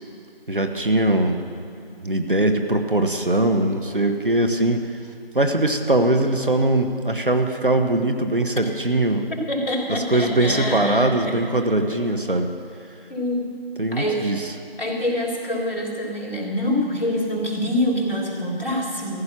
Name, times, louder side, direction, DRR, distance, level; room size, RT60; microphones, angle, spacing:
voice 1, 0.5-1.5 2.0-4.8 5.3-9.3 9.9-12.5 13.8-14.5, right 1 dB, 60° right, 6 dB, 1.1 m, -21 dB
voice 2, 9.5-11.4 13.1-13.5 13.9-14.3 14.8-19.2, left 1 dB, 65° left, -2 dB, 3.7 m, -25 dB
14.5 x 11.5 x 6.1 m, 2.7 s
figure-of-eight pair, 180°, 30 cm